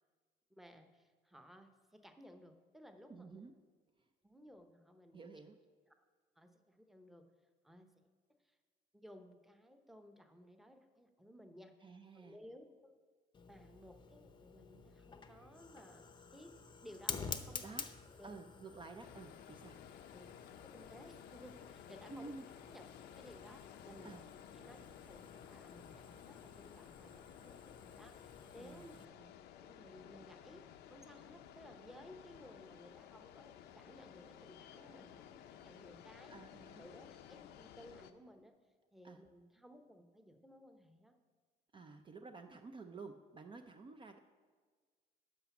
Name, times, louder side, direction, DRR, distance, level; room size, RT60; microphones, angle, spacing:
voice 1, 0.5-3.4 4.2-5.4 5.9-6.0 6.4-7.3 7.6-7.9 8.4-8.6 8.9-12.9 13.5-16.1 16.3-16.5 16.8-17.8 18.1-18.3 20.1-20.3 20.6-22.3 22.7-22.8 23.2-24.2 24.5-36.3 36.8-38.5 38.9-41.1, equal, ahead, 6 dB, 0.9 m, -58 dB
voice 2, 3.1-3.5 5.1-5.6 11.8-12.4 17.6-17.9 18.2-19.8 22.1-22.4 24.0-24.2 28.6-28.9 36.3-36.8 39.0-39.2 41.7-44.2, right 3 dB, 30° right, 6 dB, 0.6 m, -51 dB
Fire, 13.3-29.1, left 5 dB, 25° left, 0.7 m, -51 dB
sound 1, 19.0-38.1, left 10 dB, 80° left, 0.7 m, -56 dB
11.5 x 5.1 x 7.1 m, 1.5 s
cardioid pair, 110°, 17 cm